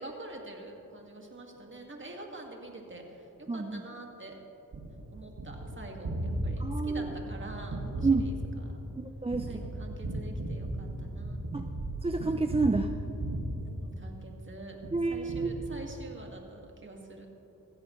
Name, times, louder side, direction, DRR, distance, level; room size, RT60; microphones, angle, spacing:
voice 1, 0.0-4.4 5.1-8.8 9.5-11.4 13.6-14.8 15.1-17.3, right 2 dB, 35° right, 1 dB, 2.1 m, -46 dB
voice 2, 3.5-3.8 6.6-7.1 8.0-8.3 9.0-9.6 11.5-11.7 12.0-12.9 14.9-15.5, right 3 dB, 15° right, 6 dB, 0.5 m, -29 dB
Gunshot gunfire, 4.7-14.4 14.8-16.2, right 1 dB, 70° right, 2.1 m, -36 dB
16.0 x 15.0 x 3.2 m, 2.9 s
cardioid pair, 60°, 34 cm